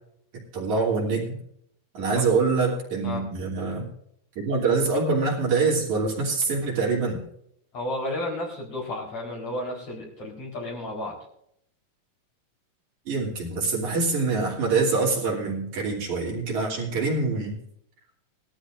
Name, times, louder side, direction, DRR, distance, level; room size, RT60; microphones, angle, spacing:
voice 1, 0.5-1.4 1.9-3.9 4.4-7.2 13.1-17.6, right 4 dB, 60° right, -3 dB, 4.3 m, -25 dB
voice 2, 7.7-11.2, left 1 dB, 45° left, -2 dB, 5.0 m, -32 dB
21.0 x 13.0 x 2.6 m, 0.70 s
omnidirectional pair, 3.8 m